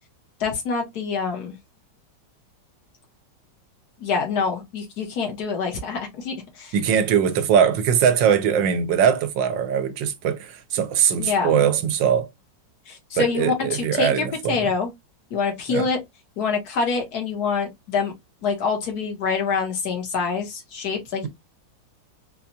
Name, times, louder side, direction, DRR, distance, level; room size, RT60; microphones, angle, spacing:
voice 1, 0.4-1.5 4.0-6.7 11.2-11.5 12.9-14.9 15.3-16.0 16.4-18.1 18.4-21.3, left 5 dB, 60° left, 1.6 m, -26 dB
voice 2, 6.7-12.3 13.2-14.7 15.7-15.9, right 8 dB, 85° right, 1.4 m, -21 dB
4.1 x 2.3 x 2.7 m
omnidirectional pair, 1.9 m